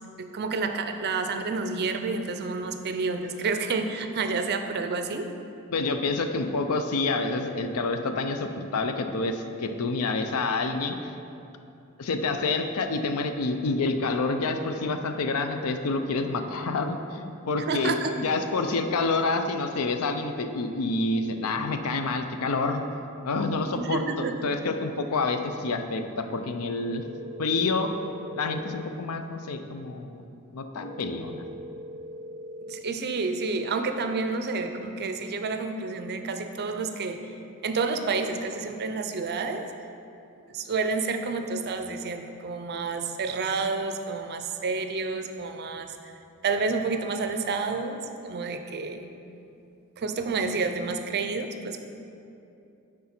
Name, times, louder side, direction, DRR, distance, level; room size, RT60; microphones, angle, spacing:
voice 1, 0.2-5.3 17.7-18.1 23.8-24.4 32.6-37.2 37.6-39.6 40.5-46.1 46.4-49.1 50.0-51.8, right 4 dB, 50° right, 7 dB, 0.5 m, -29 dB
voice 2, 5.7-11.1 12.0-22.8 23.2-27.0 27.4-27.9 28.4-30.2 30.5-31.4, left 3 dB, 70° left, 7 dB, 0.5 m, -28 dB
sound 1, 26.8-28.8 30.8-32.8, equal, 10° right, 0.7 m, -41 dB
9.5 x 3.8 x 4.3 m, 2.7 s
head